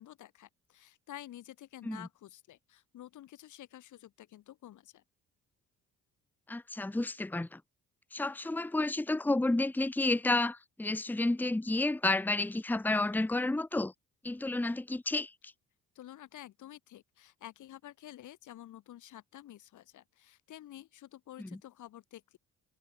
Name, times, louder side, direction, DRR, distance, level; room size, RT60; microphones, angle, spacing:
voice 1, 0.0-5.0 16.0-22.4, left 13 dB, 80° left, 4.0 m, -50 dB
voice 2, 6.5-7.6 8.1-13.9 14.2-15.3 21.4-21.5, left 2 dB, 5° left, 0.9 m, -31 dB
cardioid pair, 90°, 30 cm